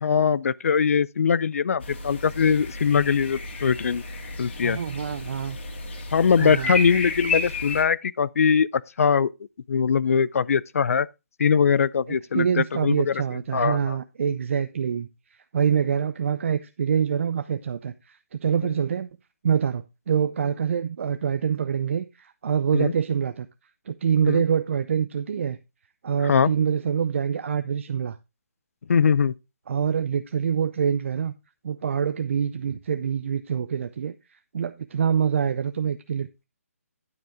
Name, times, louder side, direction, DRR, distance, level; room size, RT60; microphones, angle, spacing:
voice 1, 0.0-4.0 4.4-4.8 6.1-9.3 9.7-11.1 11.4-13.1 13.5-14.0 22.7-22.9 24.3-24.4 26.2-26.5 28.9-29.3, left 6 dB, 70° left, 0.4 m, -21 dB
sound 1, 1.8-7.8, left 2 dB, 50° left, 2.2 m, -32 dB
voice 2, 4.6-5.6 6.4-6.7 12.1-15.1 15.5-19.1 19.4-23.5 23.9-25.6 26.0-28.2 29.7-31.3 31.6-34.1 34.5-36.4, right 7 dB, 55° right, 0.5 m, -25 dB
9.5 x 7.7 x 3.5 m
hypercardioid pair, 155°, 8 cm